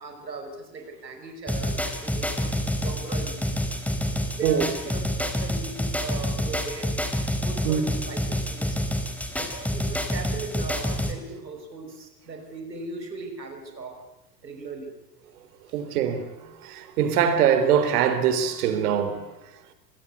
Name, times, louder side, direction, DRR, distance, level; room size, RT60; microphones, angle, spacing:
voice 1, 0.0-3.4 4.4-6.9 7.4-8.8 9.4-13.9 14.4-15.0 15.7-15.8, right 3 dB, 85° right, 5.7 m, -38 dB
sound 1, 1.5-11.1, equal, 5° left, 4.1 m, -28 dB
voice 2, 15.7-19.7, right 8 dB, 65° right, 3.9 m, -23 dB
25.0 x 21.0 x 8.3 m
figure-of-eight pair, 85°, 50 cm